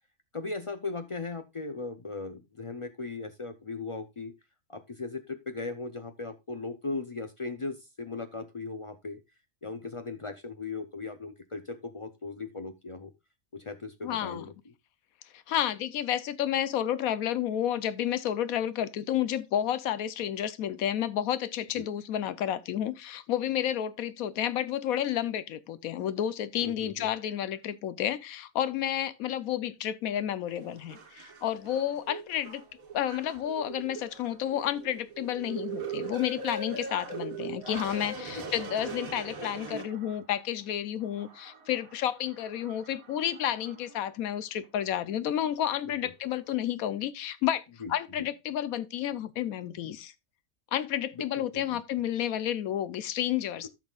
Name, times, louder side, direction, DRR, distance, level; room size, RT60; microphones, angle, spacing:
voice 1, 0.3-4.3 4.7-9.2 9.6-13.1 13.5-14.7 21.7-21.8 26.6-27.1 38.4-38.5 47.8-48.3 51.2-51.3 51.5-51.8, left 3 dB, 55° left, 0.3 m, -38 dB
voice 2, 14.0-14.5 15.3-32.6 32.9-47.6 47.9-50.1 50.7-53.7, left 11 dB, 90° left, 1.1 m, -31 dB
sound 1, 30.5-40.4 41.0-44.0 44.6-44.7, right 4 dB, 85° right, 1.8 m, -41 dB
14.5 x 6.1 x 2.3 m
omnidirectional pair, 1.4 m